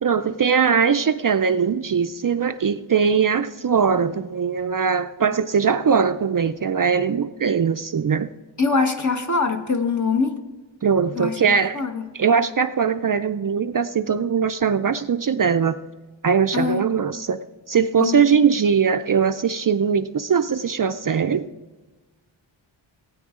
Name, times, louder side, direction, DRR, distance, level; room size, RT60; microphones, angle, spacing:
voice 1, 0.0-8.3 10.8-11.8 12.1-15.8 16.2-17.4 17.7-21.5, right 6 dB, 45° right, 9 dB, 0.5 m, -21 dB
voice 2, 8.6-10.4 11.1-12.1 16.5-16.8 18.0-18.2, left 4 dB, 35° left, 5 dB, 1.3 m, -23 dB
19.0 x 9.5 x 3.7 m, 1.2 s
wide cardioid pair, 110°, 48 cm